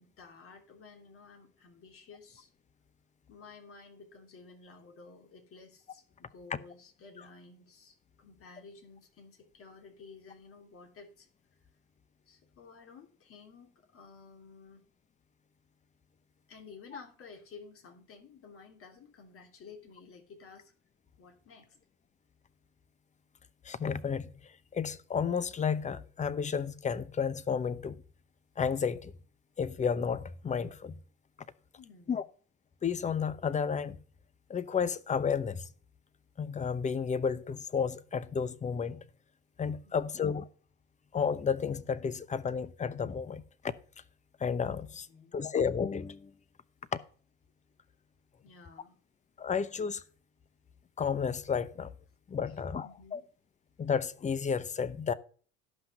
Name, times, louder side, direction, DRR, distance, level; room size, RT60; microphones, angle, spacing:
voice 1, 0.0-2.5 3.3-11.3 12.3-14.8 16.5-20.7 21.2-21.8 31.8-32.2 39.8-40.2 44.8-45.4 48.4-48.9 52.5-52.6 52.8-53.2, left 4 dB, 45° left, 3.0 m, -53 dB
voice 2, 23.6-28.0 28.6-29.1 29.6-31.0 32.1-32.2 32.8-34.0 34.5-35.7 36.4-39.0 39.6-40.5 41.1-43.7 44.4-45.1 45.3-46.3 49.4-50.0 51.0-51.9 52.3-53.2 53.8-55.1, left 6 dB, 20° left, 0.8 m, -32 dB
12.5 x 5.8 x 5.5 m
supercardioid pair, 105°, 32 cm